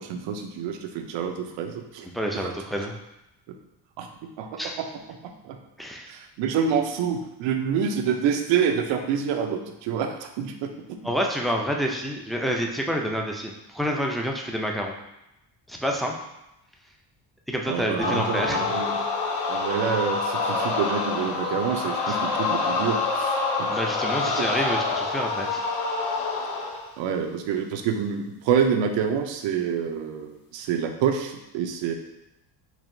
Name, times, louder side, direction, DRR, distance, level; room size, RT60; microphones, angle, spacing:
voice 1, 0.0-2.1 2.3-2.5 3.5-3.6 4.0-5.6 6.1-11.0 17.7-19.0 19.5-23.7 27.0-31.9, right 7 dB, 80° right, 5 dB, 0.6 m, -27 dB
voice 2, 2.1-2.9 4.6-4.8 5.8-6.1 11.0-14.9 15.7-16.1 17.5-18.7 22.1-22.2 23.7-25.6, equal, ahead, 0 dB, 0.4 m, -28 dB
sound 1, 18.0-26.9, left 3 dB, 60° left, 0.8 m, -27 dB
4.7 x 2.8 x 2.6 m, 0.88 s
cardioid pair, 95°, 44 cm